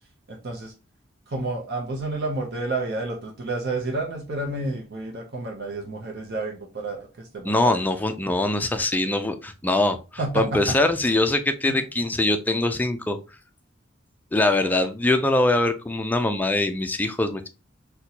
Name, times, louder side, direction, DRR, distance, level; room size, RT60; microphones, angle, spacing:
voice 1, 0.3-0.7 1.3-7.8 10.2-10.7 11.6-11.8, right 2 dB, 55° right, 0 dB, 0.7 m, -30 dB
voice 2, 7.5-10.0 10.3-13.2 14.3-17.5, left 2 dB, 10° left, 7 dB, 0.3 m, -22 dB
4.0 x 2.2 x 2.8 m, 0.30 s
head